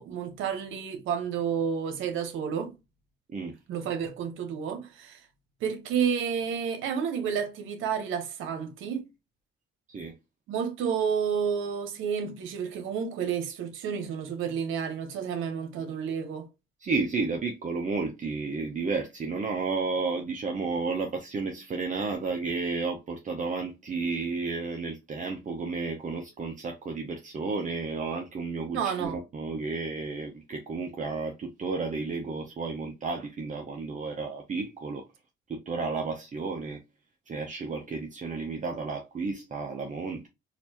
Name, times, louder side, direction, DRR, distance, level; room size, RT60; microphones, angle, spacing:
voice 1, 0.0-2.7 3.7-5.2 5.6-9.0 10.5-16.5 28.7-29.2, right 7 dB, 85° right, 1.0 m, -30 dB
voice 2, 16.8-35.0 35.5-36.8 37.3-40.3, right 4 dB, 40° right, 0.7 m, -32 dB
4.1 x 2.6 x 2.8 m
cardioid pair, 90°, 20 cm